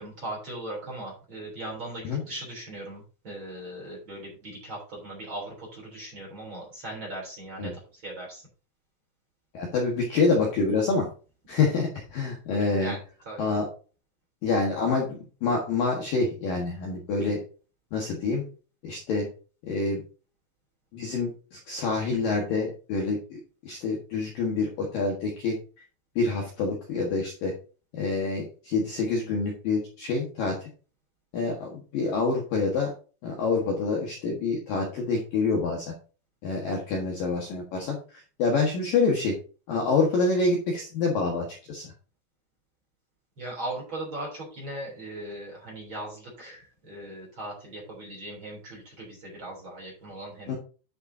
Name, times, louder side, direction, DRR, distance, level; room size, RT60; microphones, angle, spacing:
voice 1, 0.0-8.5 12.8-13.0 13.3-13.5 43.4-50.6, right 1 dB, 25° right, -2 dB, 3.5 m, -39 dB
voice 2, 9.5-11.1 11.5-12.9 13.4-13.7 14.4-17.4 17.9-18.4 18.8-19.3 19.7-20.0 20.9-25.6 26.2-27.5 27.9-30.5 31.3-32.9 33.2-35.9 36.4-39.4 39.7-41.9 50.5-50.6, left 4 dB, 60° left, 0 dB, 2.5 m, -27 dB
11.0 x 6.9 x 2.8 m, 0.36 s
omnidirectional pair, 5.9 m